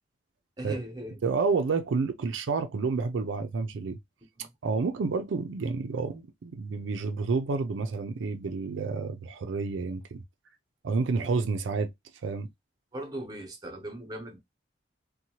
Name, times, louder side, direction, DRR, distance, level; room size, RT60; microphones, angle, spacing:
voice 1, 0.6-1.2 4.4-4.5 12.9-14.4, right 1 dB, 20° right, 0.8 m, -38 dB
voice 2, 1.2-4.0 4.6-10.2 10.8-11.9 12.2-12.5, right 4 dB, 85° right, 0.4 m, -29 dB
2.7 x 2.2 x 2.8 m
head